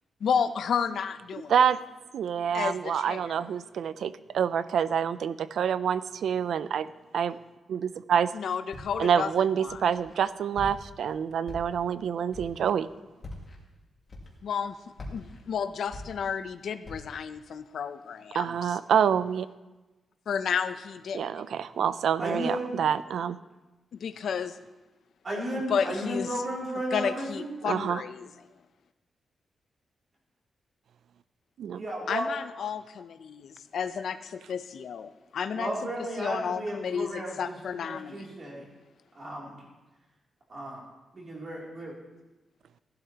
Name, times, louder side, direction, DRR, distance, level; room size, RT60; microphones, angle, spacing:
voice 1, 0.2-1.5 2.5-3.3 8.3-9.3 9.6-9.8 14.4-14.7 15.1-18.8 20.3-21.4 24.0-24.5 25.5-26.3 26.9-28.3 32.1-35.7 36.2-38.6, left 7 dB, 65° left, 11 dB, 0.6 m, -32 dB
voice 2, 2.1-6.9 7.1-7.4 7.7-8.3 9.0-12.9 18.3-19.5 21.1-23.4 27.6-28.0 31.6-31.8, right 8 dB, 75° right, 15 dB, 0.4 m, -27 dB
Walk footsteps, 8.7-9.2 9.7-10.2 10.5-11.0 11.4-11.9 12.3-12.7 13.2-13.6 14.1-14.6 14.9-16.5 16.8-17.2, left 1 dB, 30° left, 2.0 m, -43 dB
voice 3, 22.2-22.9 25.2-27.6 31.7-32.3 35.5-38.6 39.1-39.7 40.5-40.8 41.1-42.0, right 1 dB, 35° right, -3 dB, 3.0 m, -34 dB
16.5 x 12.0 x 2.9 m, 1.1 s
wide cardioid pair, 175°, 0 cm